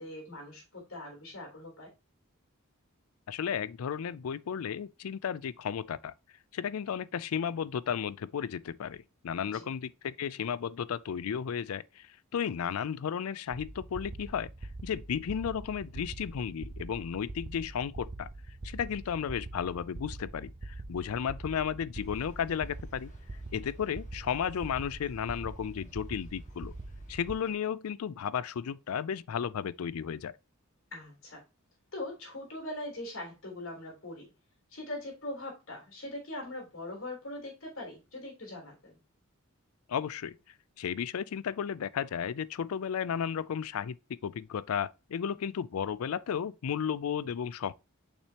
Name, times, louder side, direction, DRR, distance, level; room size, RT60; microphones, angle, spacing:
voice 1, 0.0-1.9 9.5-9.6 30.9-31.4 31.9-34.3 34.7-39.0, left 1 dB, 70° left, 3.5 m, -41 dB
voice 2, 3.3-6.1 6.5-14.5 14.8-18.3 18.6-23.1 23.5-26.7 27.1-30.3 39.9-40.4 40.8-44.0 44.2-47.7, left 8 dB, 85° left, 0.4 m, -34 dB
sound 1, 13.5-27.4, right 2 dB, 25° right, 0.4 m, -44 dB
sound 2, 22.0-27.5, equal, 35° left, 1.9 m, -59 dB
6.6 x 5.9 x 2.9 m
head